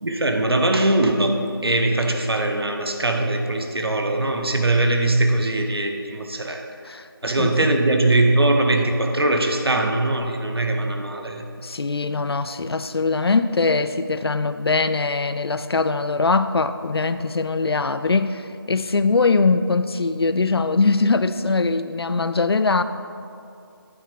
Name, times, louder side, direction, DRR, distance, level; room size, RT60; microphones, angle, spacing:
voice 1, 0.0-1.3 1.6-6.7 7.2-11.4, right 2 dB, 80° right, 3 dB, 0.9 m, -21 dB
voice 2, 11.6-22.8, left 3 dB, 85° left, 12 dB, 0.4 m, -21 dB
9.4 x 3.3 x 5.1 m, 2.5 s
figure-of-eight pair, 170°, 13 cm